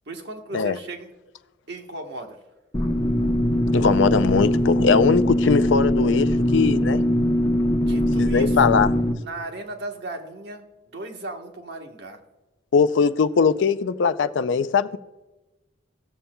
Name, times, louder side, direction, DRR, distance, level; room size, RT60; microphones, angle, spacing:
voice 1, 0.1-1.1 1.7-2.4 7.8-8.6 9.2-12.2, right 2 dB, 55° right, 1.2 m, -36 dB
sound 1, 2.7-9.1, left 1 dB, 20° left, 0.8 m, -21 dB
voice 2, 3.7-7.0 8.2-8.9 12.7-15.0, left 5 dB, 65° left, 0.4 m, -20 dB
17.5 x 7.1 x 2.2 m
head